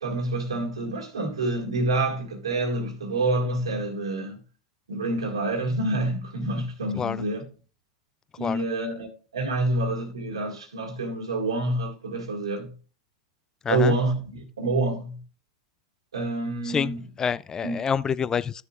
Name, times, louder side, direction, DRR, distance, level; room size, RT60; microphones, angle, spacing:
voice 1, 0.0-4.4 4.9-7.4 8.4-12.7 13.7-15.2 16.1-17.0 17.6-17.8, right 2 dB, 85° right, 2.0 m, -27 dB
voice 2, 13.6-13.9 16.7-18.6, left 7 dB, 20° left, 0.3 m, -27 dB
13.0 x 6.8 x 2.5 m
hypercardioid pair, 100°, 3 cm